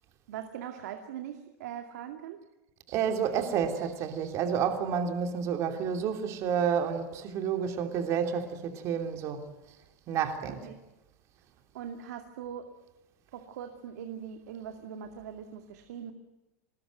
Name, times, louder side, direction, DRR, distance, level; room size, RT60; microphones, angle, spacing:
voice 1, 0.3-2.4 10.6-10.8 11.7-12.7 13.3-16.1, right 9 dB, 80° right, 2.4 m, -41 dB
voice 2, 2.9-9.4 10.1-10.6, right 7 dB, 35° right, 3.0 m, -30 dB
23.5 x 20.5 x 9.3 m
supercardioid pair, 160°, 9 cm